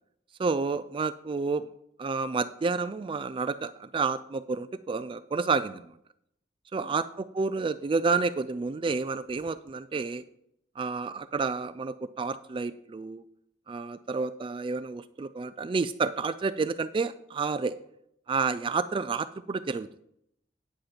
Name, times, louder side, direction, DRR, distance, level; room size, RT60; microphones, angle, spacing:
voice 1, 0.4-1.7 2.0-5.9 6.7-10.2 10.8-13.2 13.7-17.8 18.3-19.9, right 4 dB, 30° right, 13 dB, 0.3 m, -30 dB
9.3 x 7.7 x 4.4 m, 0.73 s
head